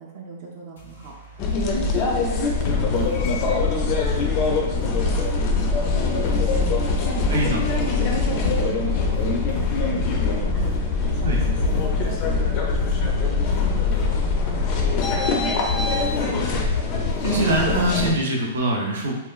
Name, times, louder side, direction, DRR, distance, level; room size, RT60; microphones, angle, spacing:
voice 1, 0.0-16.4, right 4 dB, 40° right, -1 dB, 0.4 m, -38 dB
sound 1, 0.8-18.2, left 1 dB, 90° left, 0.6 m, -41 dB
sound 2, 1.4-18.1, left 4 dB, 35° left, 0.4 m, -22 dB
voice 2, 17.2-19.2, right 1 dB, 80° right, -1 dB, 0.6 m, -23 dB
3.0 x 2.2 x 2.3 m, 1.1 s
hypercardioid pair, 160°, 0 cm